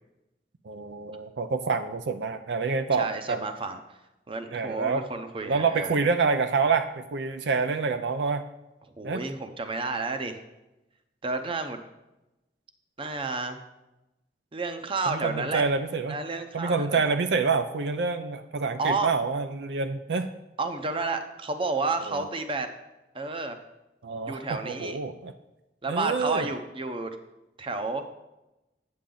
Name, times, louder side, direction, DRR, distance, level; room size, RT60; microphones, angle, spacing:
voice 1, 0.6-3.4 4.5-5.1 5.4-8.4 9.0-9.2 15.1-16.2 16.5-20.3 22.1-22.3 24.0-25.3 25.9-26.5, right 4 dB, 70° right, 9 dB, 0.5 m, -27 dB
voice 2, 3.0-3.8 4.3-5.9 9.0-10.4 11.2-11.8 13.0-13.6 14.5-15.6 16.1-17.0 18.8-19.1 20.6-22.7 23.1-23.6 24.3-25.0 25.8-27.1 27.6-28.0, right 3 dB, 30° right, 7 dB, 0.7 m, -31 dB
8.5 x 8.5 x 3.9 m, 0.98 s
head